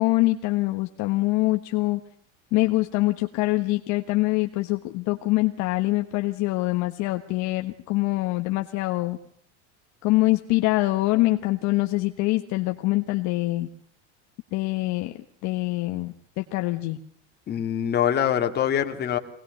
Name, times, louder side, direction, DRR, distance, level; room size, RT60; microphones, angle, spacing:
voice 1, 0.0-2.0 2.5-9.2 10.0-13.7 14.5-15.1 15.4-17.0, left 20 dB, 50° left, 6 dB, 1.4 m, -24 dB
voice 2, 17.5-19.2, left 9 dB, 30° left, 4 dB, 2.5 m, -24 dB
24.5 x 19.5 x 6.5 m, 0.66 s
cardioid pair, 160°, 35 cm